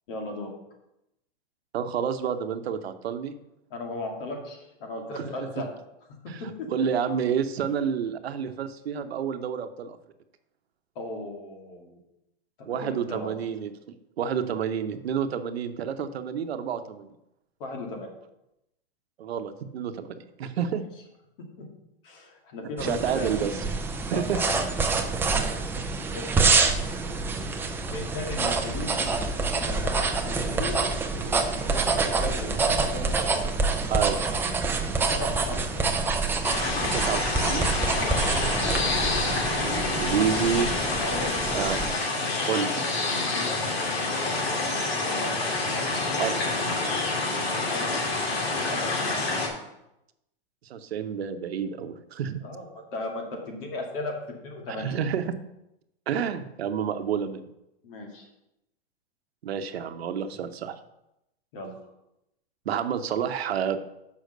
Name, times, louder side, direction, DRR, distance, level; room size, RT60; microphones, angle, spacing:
voice 1, 0.1-0.5 3.7-5.7 6.4-6.9 10.9-12.0 12.8-13.3 17.6-18.1 21.6-21.7 22.0-23.3 24.1-24.7 26.1-26.6 27.9-29.1 29.5-30.8 31.1-33.5 35.1-35.9 37.9-38.2 41.0-41.7 43.2-45.6 47.5-47.9 48.5-48.8 52.4-54.2 54.4-55.0 57.8-58.3 61.5-61.7, left 2 dB, 60° left, 1 dB, 2.5 m, -36 dB
voice 2, 1.7-3.3 5.2-5.3 6.3-6.4 6.7-10.0 12.7-13.7 14.2-17.1 19.2-20.8 22.8-23.5 24.1-24.4 25.7-25.9 33.9-34.4 36.9-37.7 39.5-40.7 41.5-41.8 42.4-42.8 46.2-46.4 50.7-52.4 54.8-55.3 56.1-57.5 59.4-60.8 62.7-63.8, right 8 dB, 85° right, 9 dB, 0.9 m, -29 dB
sound 1, 22.8-41.9, right 3 dB, 5° right, 0.5 m, -27 dB
sound 2, 36.4-49.5, left 3 dB, 80° left, 2.5 m, -27 dB
6.5 x 5.7 x 6.6 m, 0.87 s
hypercardioid pair, 140°, 30 cm